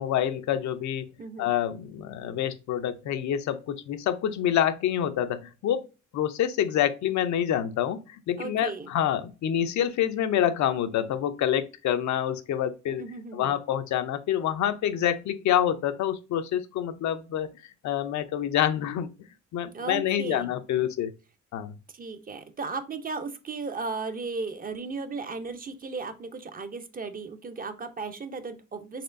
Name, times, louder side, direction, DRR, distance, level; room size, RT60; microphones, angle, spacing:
voice 1, 0.0-1.1 1.4-5.9 6.1-17.5 17.8-19.1 19.5-21.1 21.5-21.7, left 10 dB, 70° left, 0.6 m, -27 dB
voice 2, 1.2-1.5 8.4-8.9 13.0-13.6 19.7-20.5 21.9-29.0, right 4 dB, 30° right, 0.6 m, -35 dB
4.2 x 3.0 x 2.5 m
cardioid pair, 90°, 30 cm